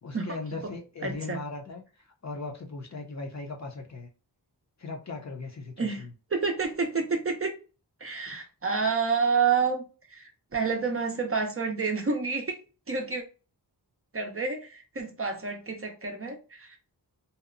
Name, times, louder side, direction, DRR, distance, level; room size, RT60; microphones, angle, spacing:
voice 1, 0.0-1.8 2.2-4.1 4.8-6.1, left 3 dB, 45° left, 2 dB, 0.5 m, -38 dB
voice 2, 1.0-1.4 5.8-6.0 6.3-7.5 8.0-12.6 12.9-13.2 14.1-16.8, right 5 dB, 35° right, 4 dB, 0.5 m, -29 dB
2.7 x 2.0 x 2.4 m, 0.34 s
wide cardioid pair, 95°, 40 cm